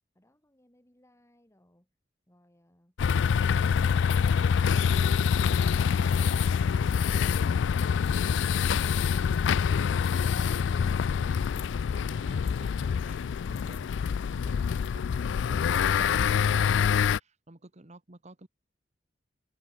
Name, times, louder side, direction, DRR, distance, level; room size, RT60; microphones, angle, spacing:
voice 1, 0.1-1.9 2.3-3.0, left 1 dB, 15° left, 4.4 m, -64 dB
sound 1, 3.0-17.2, left 7 dB, 85° left, 0.3 m, -26 dB
voice 2, 8.9-13.9 14.2-18.5, right 2 dB, 40° right, 1.5 m, -52 dB
head